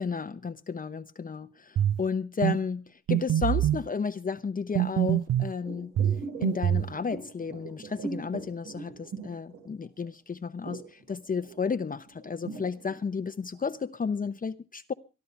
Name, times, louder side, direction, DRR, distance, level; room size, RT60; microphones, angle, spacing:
voice 1, 0.0-5.9 6.4-14.9, left 5 dB, 30° left, 0.8 m, -32 dB
sound 1, 1.8-2.0 2.4-2.6 3.1-3.8 4.8-5.5 6.0-6.9, right 11 dB, 55° right, 0.7 m, -25 dB
sound 2, 5.6-10.1 10.3-13.8 14.2-14.3, right 4 dB, 75° right, 5.2 m, -41 dB
24.5 x 11.5 x 3.4 m
cardioid pair, 90°, 30 cm